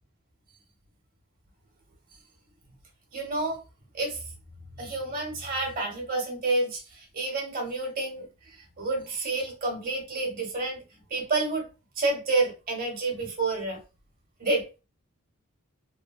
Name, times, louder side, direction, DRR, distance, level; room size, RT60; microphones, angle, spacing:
voice 1, 3.1-3.6 3.9-4.2 4.8-8.3 8.6-11.7 12.0-13.8 14.4-14.8, right 3 dB, 40° right, 1 dB, 1.0 m, -29 dB
3.1 x 2.2 x 2.2 m, 0.30 s
head